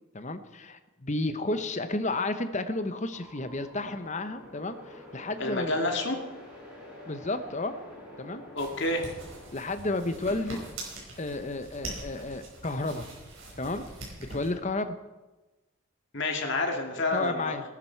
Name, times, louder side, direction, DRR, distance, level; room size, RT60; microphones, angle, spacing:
voice 1, 0.1-5.7 7.1-7.7 8.2-8.4 9.5-10.6 11.2-13.1 13.6-13.9 14.3-14.9 17.1-17.6, left 2 dB, 35° left, 10 dB, 0.9 m, -32 dB
sound 1, 3.1-9.5, left 1 dB, 5° right, 5.9 m, -48 dB
voice 2, 5.4-6.2 8.6-9.1 16.1-17.5, left 2 dB, 55° left, 2 dB, 2.2 m, -29 dB
sound 2, 8.6-14.5, right 2 dB, 65° right, 5.2 m, -43 dB
19.5 x 12.0 x 4.6 m, 1.1 s
head